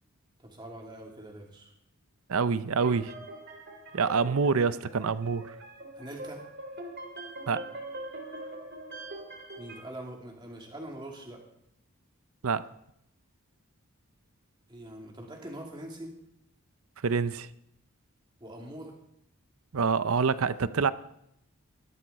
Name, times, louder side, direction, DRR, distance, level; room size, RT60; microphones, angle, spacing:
voice 1, 0.4-1.7 5.9-6.4 9.6-11.4 14.7-16.1 18.4-18.9, right 1 dB, 20° right, 0 dB, 2.5 m, -43 dB
voice 2, 2.3-3.1 3.9-5.5 7.5-7.7 12.4-12.6 17.0-17.5 19.7-20.9, right 5 dB, 70° right, 15 dB, 0.6 m, -26 dB
sound 1, 2.8-9.8, right 1 dB, 50° right, 2.9 m, -43 dB
17.5 x 12.5 x 4.1 m, 0.78 s
head